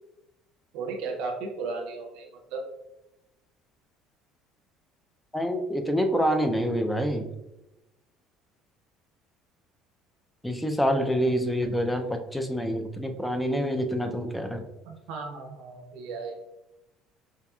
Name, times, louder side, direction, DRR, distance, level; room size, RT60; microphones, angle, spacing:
voice 1, 0.7-2.6 14.8-16.5, right 4 dB, 80° right, 2 dB, 0.6 m, -35 dB
voice 2, 5.3-7.3 10.4-14.7, equal, 5° left, 6 dB, 0.4 m, -26 dB
4.9 x 2.8 x 2.3 m, 0.92 s
cardioid pair, 125°, 0 cm